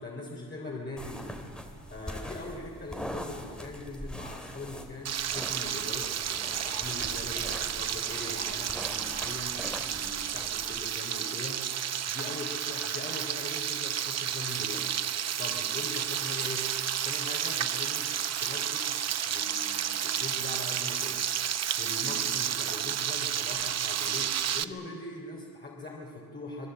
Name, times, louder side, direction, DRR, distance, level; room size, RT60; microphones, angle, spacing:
voice 1, 0.0-1.6 1.9-11.7 12.1-14.9 15.4-16.7 17.0-18.1 18.4-19.0 19.3-21.3 21.8-26.7, left 2 dB, 25° left, -2 dB, 3.5 m, -41 dB
sound 1, 1.0-10.8, equal, ahead, 2.4 m, -42 dB
Frying (food), 5.0-24.6, right 9 dB, 45° right, 0.8 m, -31 dB
27.0 x 22.0 x 7.8 m, 2.1 s
cardioid pair, 145°, 38 cm